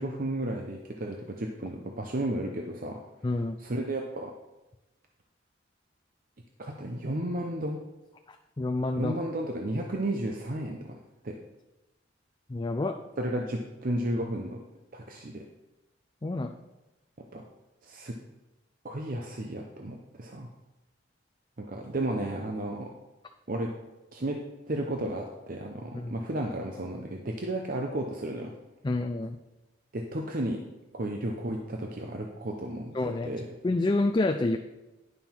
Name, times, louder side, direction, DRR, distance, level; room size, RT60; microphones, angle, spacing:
voice 1, 0.0-3.0 3.6-4.3 6.6-7.8 9.0-11.0 11.2-11.4 13.2-14.6 14.9-15.5 17.2-17.4 17.8-18.2 18.8-20.5 21.6-22.9 23.5-23.7 24.1-28.5 29.9-30.6 30.9-33.5, right 1 dB, 45° right, 2 dB, 0.7 m, -33 dB
voice 2, 3.2-3.6 8.6-9.1 12.5-13.0 16.2-16.6 25.9-26.1 28.8-29.4 32.9-33.3 33.6-34.6, left 2 dB, 25° left, 4 dB, 0.4 m, -28 dB
11.0 x 5.6 x 4.5 m, 1.0 s
head